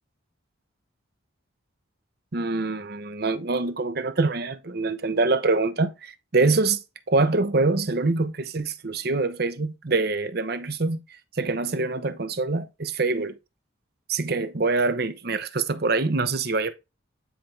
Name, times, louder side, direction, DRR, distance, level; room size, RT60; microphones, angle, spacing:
voice 1, 2.3-6.8 7.1-11.0 11.4-13.4 14.1-16.7, right 3 dB, 50° right, 0.8 m, -25 dB
10.0 x 3.4 x 4.6 m
head